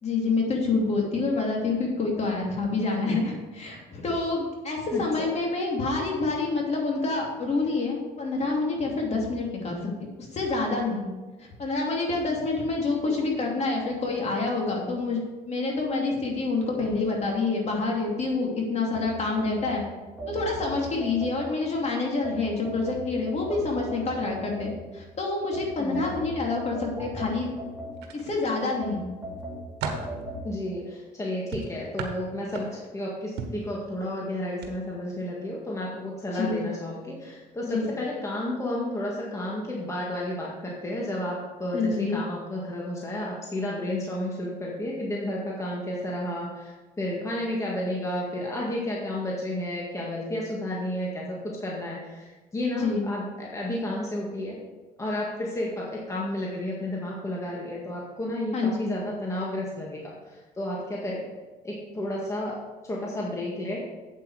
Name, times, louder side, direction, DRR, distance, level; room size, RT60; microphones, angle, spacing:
voice 1, 0.0-9.8 10.2-11.1 11.4-15.2 15.5-19.8 20.3-27.5 28.1-29.0 36.3-36.7 37.7-37.9 41.7-42.2 52.8-53.1 58.5-58.9, left 3 dB, 40° left, -1 dB, 2.8 m, -27 dB
sound 1, 18.9-21.7 22.2-25.0 25.5-28.3 28.8-30.4, right 1 dB, 10° right, 3.3 m, -38 dB
voice 2, 25.8-26.2 30.4-54.6 55.0-61.2 61.6-62.6 62.8-63.8, left 1 dB, 15° left, -4 dB, 1.8 m, -32 dB
sound 2, 28.0-28.8 29.3-30.2 31.5-33.0 33.4-33.7 34.5-34.7 35.1-35.3, right 5 dB, 85° right, 1.4 m, -36 dB
8.4 x 7.9 x 4.9 m, 1.2 s
cardioid pair, 110°, 17 cm